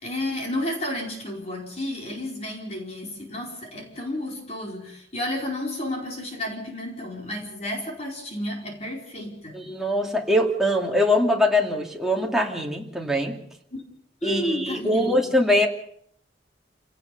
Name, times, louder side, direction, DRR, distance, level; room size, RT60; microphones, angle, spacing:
voice 1, 0.0-9.5 14.2-15.2, left 1 dB, 40° left, 0 dB, 4.7 m, -31 dB
voice 2, 9.5-13.4 14.2-15.7, left 1 dB, ahead, 0 dB, 2.7 m, -22 dB
29.0 x 18.0 x 5.4 m, 0.65 s
head